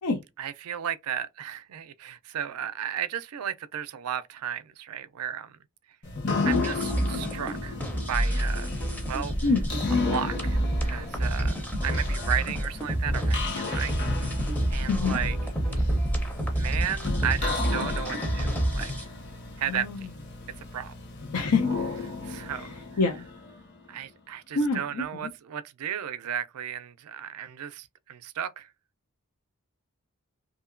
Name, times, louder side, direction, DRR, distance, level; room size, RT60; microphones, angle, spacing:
voice 1, 0.4-5.6 6.4-7.8 8.1-8.7 9.1-9.3 10.0-11.6 11.8-14.3 14.7-15.4 15.7-15.8 16.5-18.9 19.6-19.9 20.7-20.9 22.2-22.8 23.9-28.7, right 9 dB, 90° right, 0.4 m, -34 dB
sound 1, 6.0-23.9, left 3 dB, 50° left, 1.0 m, -33 dB
sound 2, 6.5-19.1, right 1 dB, 5° left, 0.5 m, -29 dB
voice 2, 14.9-15.2 19.7-20.1 21.3-21.7 22.5-23.2 24.5-25.3, left 4 dB, 85° left, 0.6 m, -26 dB
2.8 x 2.6 x 2.5 m
head